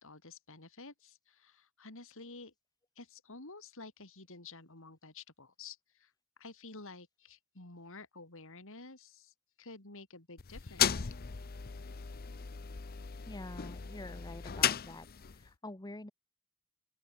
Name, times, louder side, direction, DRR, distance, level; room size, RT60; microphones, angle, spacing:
voice 1, 0.0-2.5 3.0-6.1 6.4-11.1, left 3 dB, 65° left, 3.9 m, -51 dB
sound 1, 10.4-15.5, left 9 dB, 45° left, 0.7 m, -35 dB
voice 2, 13.3-16.1, left 1 dB, 20° left, 1.4 m, -47 dB
open air
head